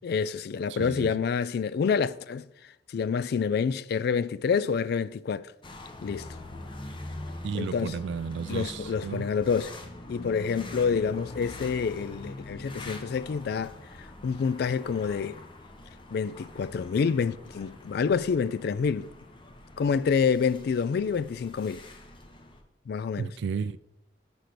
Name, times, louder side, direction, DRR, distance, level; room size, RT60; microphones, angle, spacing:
voice 1, 0.0-2.5 2.9-5.5 6.0-6.3 7.5-8.0 8.5-9.8 10.1-15.4 16.1-19.1 19.8-21.8 22.9-23.3, left 6 dB, 60° left, 0.3 m, -28 dB
voice 2, 0.7-1.1 7.4-9.3 23.2-23.8, right 6 dB, 70° right, 0.3 m, -33 dB
sound 1, 5.6-22.6, left 1 dB, 30° left, 0.8 m, -44 dB
6.6 x 5.2 x 5.9 m
head